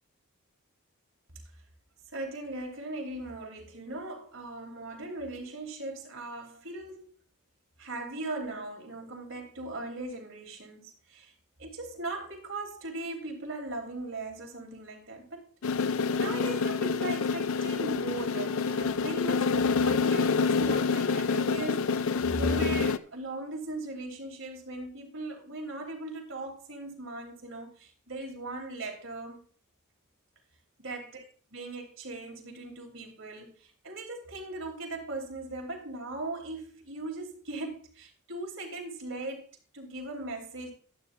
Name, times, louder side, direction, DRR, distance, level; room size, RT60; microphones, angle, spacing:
voice 1, 2.1-7.1 7.8-11.3 11.6-15.5 15.8-29.4 30.8-31.2 31.5-40.7, right 2 dB, 60° right, 3.2 m, -39 dB
sound 1, 15.6-23.0, left 5 dB, 65° left, 0.5 m, -27 dB
12.0 x 12.0 x 2.5 m
head